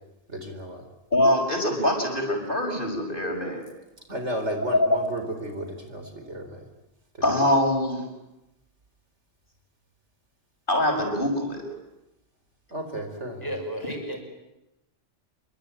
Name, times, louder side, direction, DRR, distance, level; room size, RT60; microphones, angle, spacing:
voice 1, 0.3-0.8 4.1-6.6 7.3-7.4 12.7-13.5, right 1 dB, 80° right, 6 dB, 4.8 m, -33 dB
voice 2, 1.1-3.6 4.7-4.9 7.2-8.1 10.7-11.6, left 1 dB, 45° left, 3 dB, 6.5 m, -23 dB
voice 3, 13.4-14.2, equal, 20° left, 3 dB, 6.6 m, -32 dB
26.5 x 24.5 x 9.2 m, 0.92 s
omnidirectional pair, 1.2 m